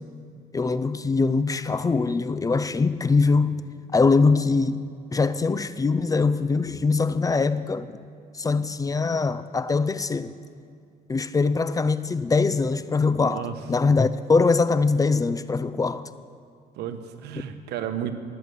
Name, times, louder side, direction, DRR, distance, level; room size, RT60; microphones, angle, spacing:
voice 1, 0.5-3.6 3.9-4.9 5.1-7.9 8.4-10.3 11.1-13.4 13.7-16.1, left 4 dB, 20° left, 0.5 m, -22 dB
voice 2, 13.3-13.7 16.7-18.1, right 10 dB, 80° right, 1.2 m, -33 dB
20.0 x 8.0 x 7.0 m
cardioid pair, 110°, 17 cm